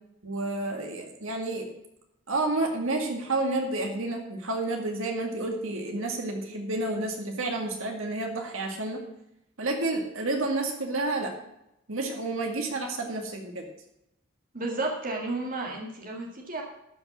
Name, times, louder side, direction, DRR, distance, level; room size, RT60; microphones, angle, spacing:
voice 1, 0.2-1.7 2.3-9.0 9.6-11.3 11.9-13.7, right 2 dB, 70° right, 3 dB, 2.2 m, -30 dB
voice 2, 14.5-16.6, right 2 dB, 40° right, 0 dB, 1.8 m, -32 dB
12.5 x 5.6 x 7.0 m, 0.83 s
head